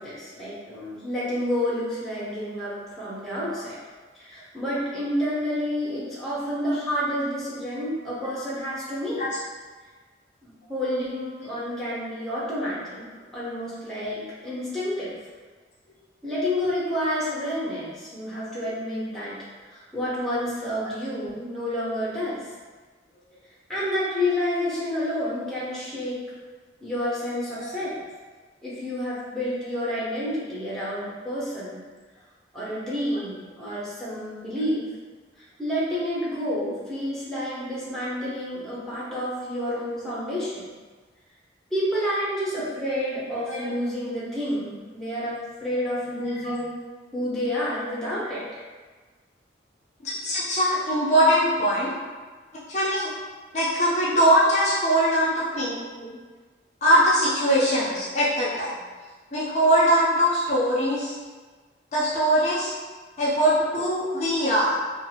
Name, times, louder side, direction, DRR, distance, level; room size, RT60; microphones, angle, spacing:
voice 1, 0.0-3.8 4.2-9.2 10.7-13.1 13.3-15.2 16.2-19.4 19.7-22.4 23.7-26.2 26.8-28.0 28.6-31.8 32.5-34.9 35.6-40.7 41.7-46.7 47.1-48.6 55.3-55.7, left 1 dB, ahead, -9 dB, 0.7 m, -29 dB
voice 2, 50.0-51.9 52.7-53.1 53.5-55.8 56.0-56.2 56.8-58.8 59.3-61.1 61.9-62.7 63.2-64.7, equal, 40° left, -8 dB, 0.5 m, -21 dB
2.7 x 2.4 x 2.7 m, 1.4 s
head